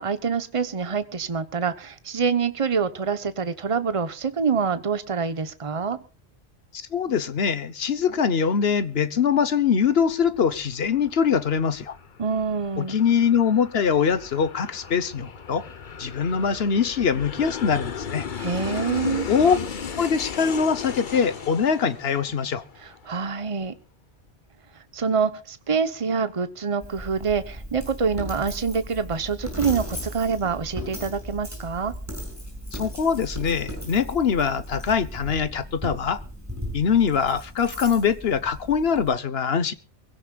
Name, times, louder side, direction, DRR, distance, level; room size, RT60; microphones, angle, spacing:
voice 1, 0.0-6.0 12.2-12.9 18.4-19.3 23.0-23.7 24.9-31.9, right 6 dB, 30° right, 11 dB, 1.0 m, -26 dB
voice 2, 6.9-12.0 12.8-15.6 16.0-18.3 19.3-19.6 20.0-22.6 32.7-36.2 36.7-39.7, left 6 dB, 65° left, 13 dB, 1.3 m, -23 dB
Aircraft, 10.0-23.2, left 6 dB, 50° left, 1.1 m, -36 dB
Coin (dropping), 26.8-39.1, equal, 15° right, 7.3 m, -37 dB
23.5 x 16.5 x 2.4 m, 0.35 s
omnidirectional pair, 1.1 m